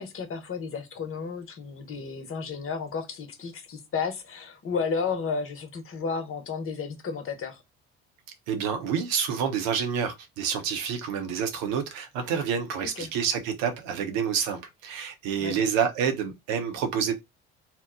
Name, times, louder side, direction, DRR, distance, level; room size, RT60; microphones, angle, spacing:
voice 1, 0.0-7.6 13.0-13.1 15.4-15.5, left 5 dB, 40° left, 1.0 m, -32 dB
voice 2, 8.5-17.1, right 7 dB, 70° right, 0.9 m, -28 dB
2.8 x 2.1 x 3.6 m
hypercardioid pair, 55°, 32 cm